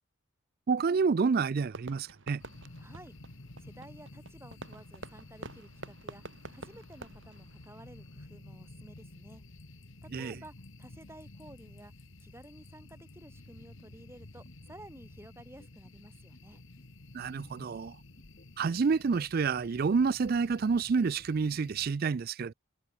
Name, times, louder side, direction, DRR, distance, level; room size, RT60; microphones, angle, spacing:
voice 1, 0.7-2.4 10.1-10.4 17.1-18.0 18.6-22.5, right 5 dB, 45° right, 0.3 m, -28 dB
Fireworks, 1.7-8.2, right 2 dB, 60° right, 2.6 m, -48 dB
sound 1, 2.4-21.9, left 2 dB, 60° left, 1.7 m, -52 dB
voice 2, 2.8-3.1 3.6-6.2 6.5-9.4 10.0-11.9 12.2-16.6, right 1 dB, 10° right, 5.5 m, -53 dB
sound 2, 14.4-15.1 15.4-16.0 16.3-16.9 17.2-17.8 18.2-18.8 19.1-19.7 20.0-20.6 20.9-21.6, equal, 40° left, 5.2 m, -61 dB
head